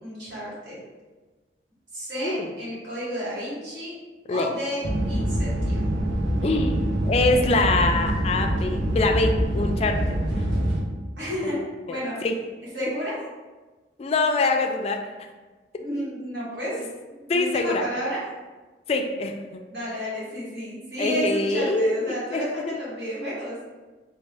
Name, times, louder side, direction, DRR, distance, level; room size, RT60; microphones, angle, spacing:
voice 1, 0.0-0.8 1.9-3.9 4.3-6.0 11.2-12.3 12.7-13.2 15.8-18.2 19.7-23.6, equal, 70° right, -8 dB, 1.4 m, -31 dB
sound 1, 4.8-10.8, right 1 dB, 90° right, 0.7 m, -25 dB
voice 2, 6.4-10.2 11.9-12.0 12.2-12.4 14.0-15.0 17.3-17.8 18.9-19.6 21.0-22.5, left 3 dB, 35° left, 4 dB, 0.3 m, -24 dB
3.6 x 2.3 x 3.3 m, 1.3 s
head